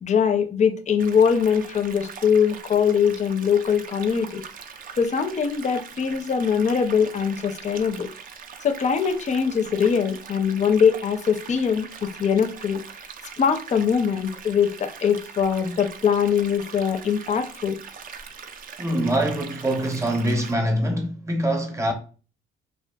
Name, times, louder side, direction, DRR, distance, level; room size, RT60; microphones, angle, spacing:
voice 1, 0.0-4.4 5.0-8.1 8.6-11.9 12.2-12.8 13.4-17.8, left 7 dB, 35° left, 0.4 m, -22 dB
sound 1, 1.0-20.5, right 6 dB, 45° right, 0.4 m, -41 dB
voice 2, 18.8-21.9, right 1 dB, 15° right, 0.7 m, -24 dB
2.5 x 2.4 x 2.2 m
cardioid pair, 90°, 20 cm